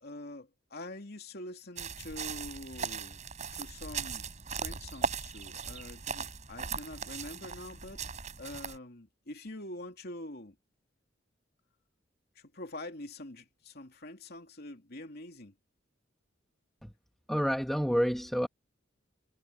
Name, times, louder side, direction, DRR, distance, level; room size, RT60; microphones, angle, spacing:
voice 1, 0.0-3.2 3.5-4.2 4.5-8.0 8.4-10.5 12.3-15.5, left 1 dB, 55° left, 2.8 m, -45 dB
sound 1, 1.8-8.8, right 5 dB, 40° right, 3.9 m, -38 dB
voice 2, 17.3-18.5, equal, ahead, 1.2 m, -28 dB
head